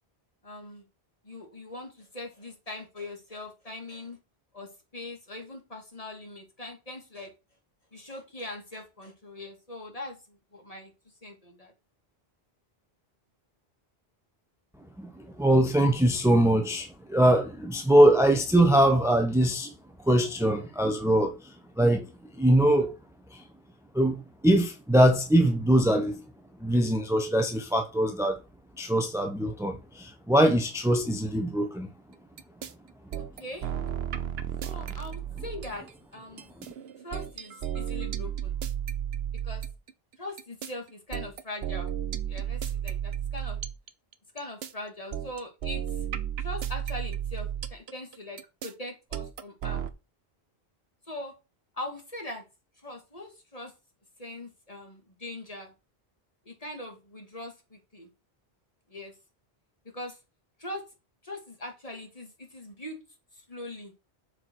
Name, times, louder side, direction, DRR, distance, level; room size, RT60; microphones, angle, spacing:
voice 1, 0.4-0.8 1.2-4.2 4.5-7.3 7.9-10.9 11.2-11.7 33.2-33.7 34.6-35.9 36.1-36.5 37.0-38.5 39.4-39.6 40.2-41.9 42.3-43.6 44.3-46.0 46.4-49.9 51.0-51.3 51.7-52.4 52.8-53.7 54.2-55.7 56.5-58.1 58.9-59.1 59.8-60.2 60.6-60.8 61.2-63.0 63.4-63.9, left 1 dB, 35° left, 2.4 m, -41 dB
voice 2, 15.0-19.7 20.0-22.9 23.3-23.4 23.9-26.2 26.6-28.4 28.8-31.9, right 1 dB, 5° right, 1.0 m, -23 dB
sound 1, 32.4-32.7 33.1-35.9 36.4-39.9 40.4-44.7 45.1-49.9, right 10 dB, 80° right, 1.0 m, -33 dB
7.3 x 4.8 x 6.3 m
omnidirectional pair, 1.0 m